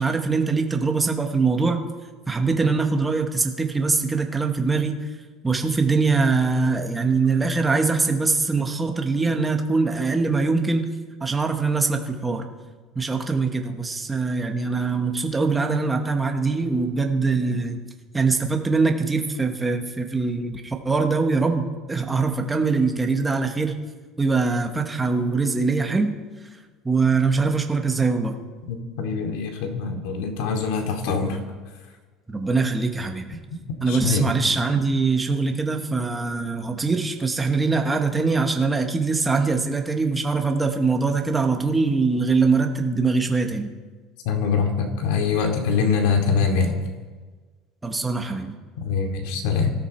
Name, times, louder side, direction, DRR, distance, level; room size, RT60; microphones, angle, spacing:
voice 1, 0.0-1.8 2.3-5.0 5.4-10.9 11.2-12.5 12.9-17.8 18.1-23.7 24.2-26.2 26.8-28.4 32.3-33.3 33.8-43.7 47.8-48.5, right 4 dB, 10° right, 3 dB, 1.1 m, -23 dB
voice 2, 28.7-31.4 33.9-34.2 44.2-46.8 48.8-49.7, left 5 dB, 70° left, 4 dB, 2.5 m, -23 dB
24.5 x 13.5 x 4.3 m, 1.4 s
cardioid pair, 180°, 0 cm